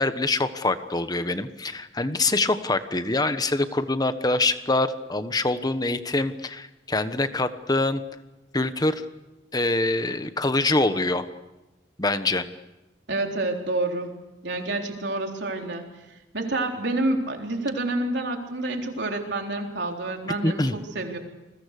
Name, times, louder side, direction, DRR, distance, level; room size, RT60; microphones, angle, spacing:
voice 1, 0.0-8.0 8.5-9.0 9.5-11.3 12.0-12.4 20.4-20.7, left 2 dB, 20° left, 10 dB, 1.2 m, -24 dB
voice 2, 13.1-14.2 14.4-15.9 16.3-21.2, right 2 dB, 70° right, 2 dB, 3.8 m, -28 dB
29.5 x 21.5 x 6.7 m, 1.0 s
head